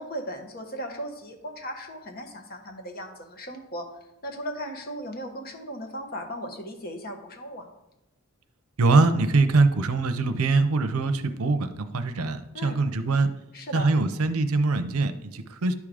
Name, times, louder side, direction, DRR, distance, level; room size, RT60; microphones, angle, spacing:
voice 1, 0.0-3.8 4.2-7.7 12.5-12.8 13.5-13.9, equal, 45° left, 3 dB, 1.1 m, -37 dB
voice 2, 8.8-13.3 13.7-15.7, right 3 dB, 80° right, 10 dB, 0.6 m, -23 dB
11.0 x 3.7 x 4.9 m, 0.89 s
head